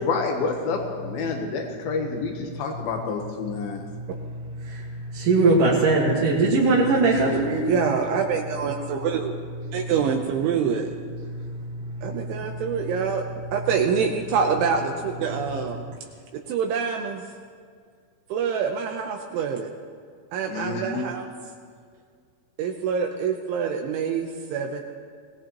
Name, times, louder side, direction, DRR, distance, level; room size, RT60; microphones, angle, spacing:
voice 1, 0.0-3.8 20.5-21.1, left 4 dB, 80° left, 3 dB, 2.1 m, -28 dB
voice 2, 5.1-7.7, right 3 dB, 55° right, -6 dB, 2.5 m, -20 dB
voice 3, 7.7-9.3 9.7-10.9 12.0-13.2 13.5-15.8 16.5-17.3 18.3-19.7 20.3-21.3 22.6-24.8, right 6 dB, 75° right, 3 dB, 3.0 m, -26 dB
25.0 x 18.0 x 3.0 m, 2.1 s
omnidirectional pair, 5.9 m